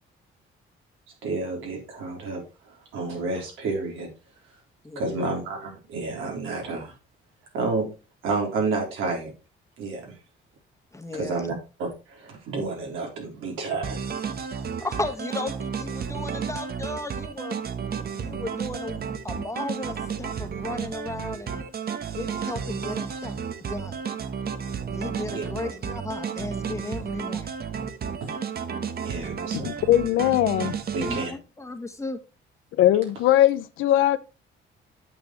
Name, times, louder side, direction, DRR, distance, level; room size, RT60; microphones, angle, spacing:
voice 1, 1.2-2.4 2.9-4.1 5.0-6.9 7.5-7.9 8.2-9.3 9.8-10.1 11.1-14.0 25.3-25.4 28.2-28.3 29.0-29.7 30.9-31.3, right 3 dB, 90° right, 3.7 m, -30 dB
voice 2, 4.8-5.3 10.9-11.4 14.8-17.5 18.1-21.6 22.1-23.4 23.7-24.0 24.9-27.5 29.2-29.3 31.0-32.2, left 2 dB, 15° left, 1.5 m, -35 dB
sound 1, 13.8-31.3, right 7 dB, 50° right, 1.1 m, -32 dB
voice 3, 29.5-30.8 32.8-34.2, left 13 dB, 90° left, 0.7 m, -20 dB
8.8 x 6.8 x 3.2 m
cardioid pair, 90°, 20 cm